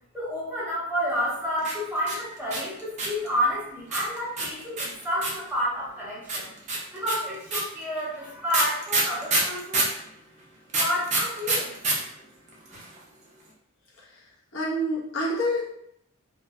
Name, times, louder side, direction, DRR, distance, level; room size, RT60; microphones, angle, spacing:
voice 1, 0.1-6.5 6.9-9.9 10.7-11.8 12.6-12.8, equal, 10° right, -10 dB, 0.9 m, -30 dB
sound 1, 1.6-3.3 3.9-5.5 6.3-10.0 10.7-11.9 12.2-12.3 12.5-13.0, right 2 dB, 35° right, 0.5 m, -26 dB
voice 2, 14.5-15.7, equal, 70° left, -5 dB, 0.8 m, -27 dB
2.5 x 2.3 x 2.2 m, 0.75 s
head